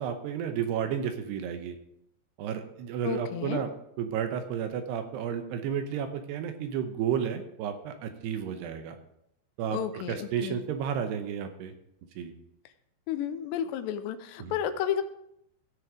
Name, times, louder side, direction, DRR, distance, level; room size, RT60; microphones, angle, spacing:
voice 1, 0.0-1.8 2.4-3.7 4.0-9.0 9.6-11.7 12.2-12.3 14.4-14.6, right 8 dB, 75° right, 7 dB, 2.9 m, -32 dB
voice 2, 3.0-3.6 9.7-10.5 13.1-15.0, left 9 dB, 80° left, 10 dB, 2.8 m, -32 dB
17.0 x 6.4 x 5.0 m, 0.77 s
omnidirectional pair, 5.1 m